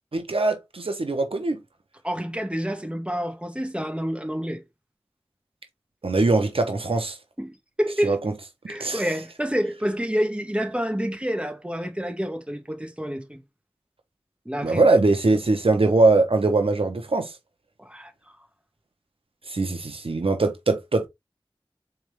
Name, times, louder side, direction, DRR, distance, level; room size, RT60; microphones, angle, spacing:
voice 1, 0.1-1.6 6.0-7.2 8.0-8.3 8.8-9.0 14.6-17.3 19.5-21.1, right 3 dB, 75° right, 0.8 m, -21 dB
voice 2, 2.0-4.6 7.4-8.2 8.7-13.4 14.4-14.8 17.8-18.1, equal, 10° right, 1.1 m, -28 dB
4.1 x 3.4 x 3.2 m
wide cardioid pair, 55°, 10 cm